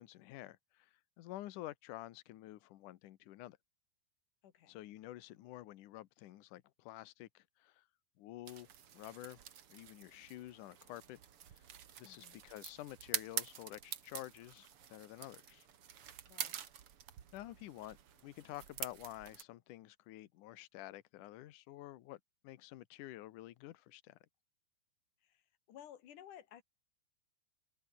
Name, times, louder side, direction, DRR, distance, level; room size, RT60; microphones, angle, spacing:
voice 1, 0.0-3.6 4.7-7.9 8.2-9.4 9.7-11.2 11.5-11.6 12.0-15.7 17.3-18.0 18.2-24.2, left 15 dB, 85° left, 1.8 m, -50 dB
voice 2, 4.4-4.8 12.0-12.4 16.3-16.6 25.2-25.4 25.7-26.6, left 10 dB, 55° left, 2.9 m, -56 dB
sound 1, 8.5-19.4, right 9 dB, 65° right, 1.3 m, -47 dB
omnidirectional pair, 5.2 m